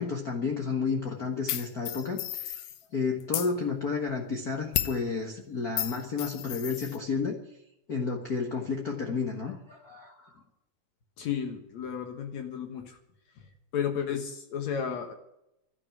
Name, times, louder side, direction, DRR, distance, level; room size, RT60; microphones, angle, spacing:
voice 1, 0.0-7.4 7.9-10.4, left 5 dB, 40° left, 2 dB, 1.5 m, -31 dB
sound 1, 1.5-2.8 3.2-3.5 4.7-5.0 5.8-7.0, left 12 dB, 85° left, 2.4 m, -33 dB
voice 2, 11.2-13.0 13.7-15.1, left 8 dB, 70° left, 6 dB, 2.6 m, -33 dB
12.5 x 10.5 x 9.6 m, 0.84 s
omnidirectional pair, 3.4 m